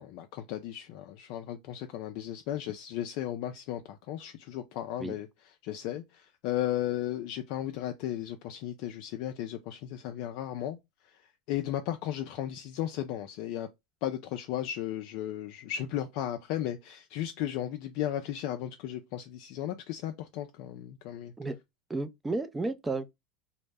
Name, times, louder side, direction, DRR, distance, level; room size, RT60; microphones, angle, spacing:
voice 1, 0.0-5.3 5.6-10.8 11.1-11.2 11.5-13.7 14.0-21.3, left 12 dB, 65° left, 0.3 m, -35 dB
voice 2, 21.9-23.1, right 3 dB, 15° right, 0.4 m, -32 dB
2.0 x 2.0 x 3.3 m
supercardioid pair, 105°, 0 cm